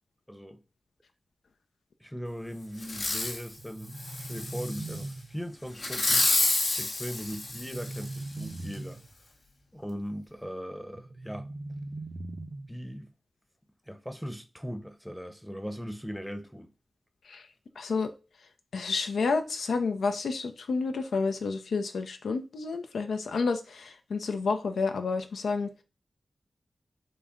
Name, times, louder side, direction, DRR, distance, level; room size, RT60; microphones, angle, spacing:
voice 1, 0.3-0.6 2.0-6.3 6.8-9.0 9.7-11.5 12.7-13.1 13.9-16.7, equal, ahead, 0.7 m, -39 dB
Fireworks, 2.8-3.4 4.0-5.0 5.8-8.2 8.7-8.8, left 2 dB, 70° left, 0.8 m, -29 dB
sound 1, 3.6-5.6 7.3-9.1 10.9-12.9, right 2 dB, 55° right, 0.5 m, -40 dB
voice 2, 17.8-18.1 18.7-25.7, left 4 dB, 85° left, 0.4 m, -30 dB
3.8 x 2.2 x 3.6 m
cardioid pair, 45°, 0 cm